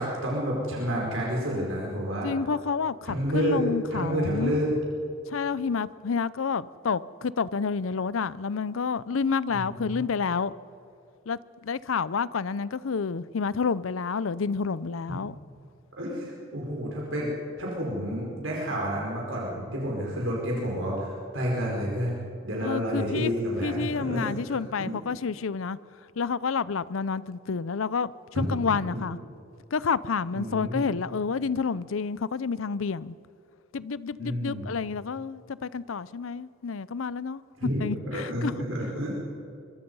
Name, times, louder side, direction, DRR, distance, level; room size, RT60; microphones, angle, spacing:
voice 1, 0.0-2.3 3.0-3.6 3.9-4.7 9.5-10.0 16.0-17.3 17.6-25.0 28.3-28.4 28.9-29.1 30.3-30.8 34.2-34.7 37.6-39.2, equal, 75° right, 5.1 m, -30 dB
voice 2, 2.2-4.6 5.3-10.5 11.3-15.3 22.6-23.3 23.6-25.8 26.2-29.2 29.7-33.2 33.7-37.4 37.8-38.5 38.8-38.9, left 5 dB, 85° left, 0.6 m, -29 dB
24.0 x 23.5 x 5.5 m
head